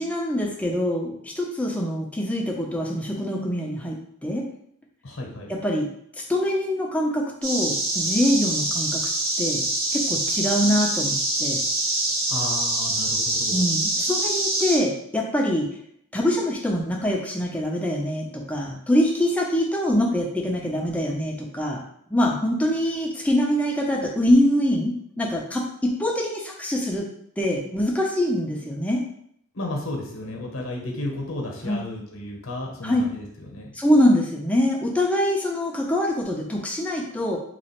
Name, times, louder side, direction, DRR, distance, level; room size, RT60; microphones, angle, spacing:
voice 1, 0.0-4.5 5.5-5.9 6.2-9.0 9.4-9.7 9.9-11.6 13.5-15.7 16.1-21.8 22.1-27.1 27.4-29.0 31.6-31.8 32.8-33.0 33.7-37.4, left 1 dB, 5° left, -1 dB, 0.5 m, -24 dB
voice 2, 5.0-5.5 12.3-13.6 29.5-33.7, left 2 dB, 65° left, 1 dB, 0.9 m, -33 dB
sound 1, 7.4-14.8, right 2 dB, 85° right, 1.2 m, -25 dB
3.0 x 2.4 x 4.2 m, 0.69 s
head